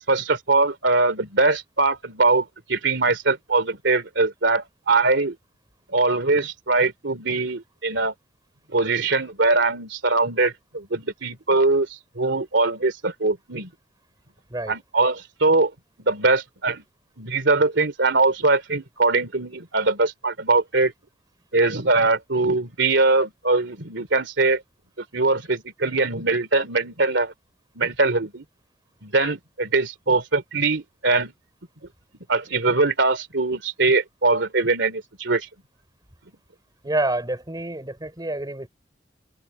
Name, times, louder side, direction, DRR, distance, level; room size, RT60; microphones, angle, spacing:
voice 1, 0.1-5.3 5.9-8.1 8.7-11.9 12.2-13.7 14.7-15.7 16.0-16.8 17.2-20.9 21.5-24.6 25.1-27.3 27.8-28.4 29.0-31.3 32.3-35.5, right 3 dB, 70° right, 2.9 m, -22 dB
voice 2, 36.8-38.7, right 1 dB, 20° right, 4.2 m, -27 dB
open air
head